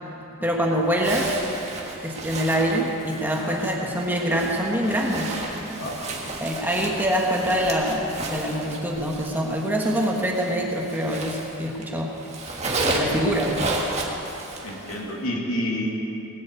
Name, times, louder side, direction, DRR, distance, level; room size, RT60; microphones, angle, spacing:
voice 1, 0.4-1.4 2.0-5.4 6.4-12.1 13.0-13.6, equal, 10° right, -1 dB, 1.4 m, -24 dB
Zipper (clothing), 0.9-11.9 12.1-15.1, right 2 dB, 30° right, 1.6 m, -32 dB
voice 2, 5.8-6.4 14.6-15.9, left 1 dB, 80° left, -1 dB, 2.5 m, -29 dB
19.0 x 7.7 x 8.2 m, 3.0 s
head